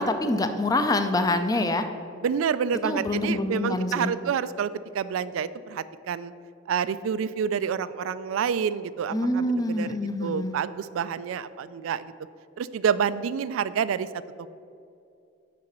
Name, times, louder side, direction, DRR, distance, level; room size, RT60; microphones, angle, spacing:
voice 1, 0.0-1.9 2.8-4.1 9.1-10.6, left 2 dB, 20° left, 8 dB, 0.4 m, -26 dB
voice 2, 2.2-6.3 6.7-9.9 10.2-12.1 12.6-14.1, right 7 dB, 85° right, 15 dB, 0.3 m, -28 dB
6.7 x 4.9 x 6.7 m, 2.5 s
head